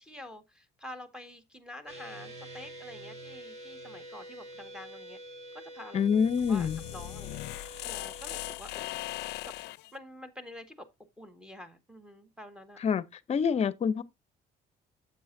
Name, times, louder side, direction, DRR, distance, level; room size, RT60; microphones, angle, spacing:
voice 1, 0.0-5.2 5.7-6.0 6.5-7.4 7.8-9.3 9.9-10.9 11.2-12.8, left 1 dB, 5° right, 1.7 m, -47 dB
sound 1, 1.9-8.6, right 1 dB, 40° right, 3.8 m, -47 dB
voice 2, 5.9-6.8 12.8-13.0 13.3-14.0, left 6 dB, 40° left, 0.7 m, -26 dB
sound 2, 6.1-9.9, left 18 dB, 80° left, 0.5 m, -39 dB
9.2 x 8.1 x 2.6 m
cardioid pair, 110°, 17 cm